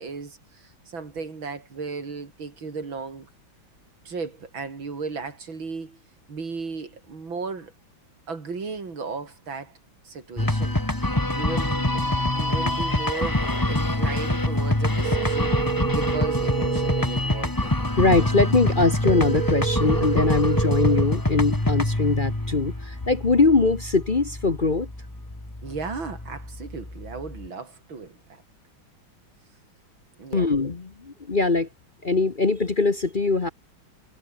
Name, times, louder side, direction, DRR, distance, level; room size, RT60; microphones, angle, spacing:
voice 1, 0.0-3.3 4.1-6.0 6.3-7.7 8.3-9.7 10.0-17.9 25.6-28.4 30.2-30.5, right 4 dB, 85° right, 4.4 m, -35 dB
sound 1, 10.4-27.5, left 1 dB, 10° left, 1.9 m, -25 dB
sound 2, 15.0-17.0 19.0-21.0, right 9 dB, 50° right, 1.1 m, -28 dB
voice 2, 18.0-24.9 30.3-31.7 32.0-33.5, left 3 dB, 30° left, 1.2 m, -22 dB
omnidirectional pair, 2.1 m